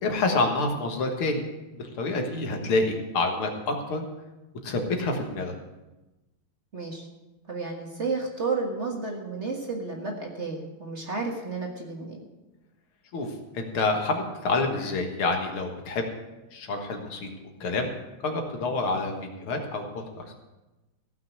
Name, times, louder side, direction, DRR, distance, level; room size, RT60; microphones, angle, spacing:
voice 1, 0.0-1.5 1.8-4.1 4.6-5.5 13.1-13.3 13.5-16.1 16.5-17.3 17.6-17.9 18.2-20.3, left 3 dB, 80° left, 3 dB, 2.4 m, -28 dB
voice 2, 6.7-7.1 7.5-12.2, right 4 dB, 35° right, 1 dB, 1.6 m, -32 dB
15.5 x 6.0 x 7.9 m, 1.1 s
omnidirectional pair, 2.4 m